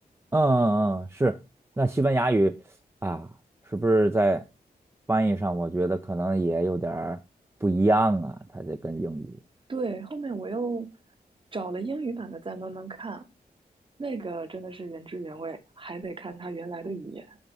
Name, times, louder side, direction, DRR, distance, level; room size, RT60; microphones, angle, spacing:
voice 1, 0.3-1.4 1.8-2.5 3.0-3.3 3.7-4.4 5.1-7.2 7.6-9.3, right 2 dB, 15° right, 0.4 m, -24 dB
voice 2, 9.7-10.9 11.5-13.2 14.0-17.4, right 3 dB, 30° right, 0.9 m, -34 dB
6.2 x 2.9 x 5.2 m
cardioid pair, 55°, 16 cm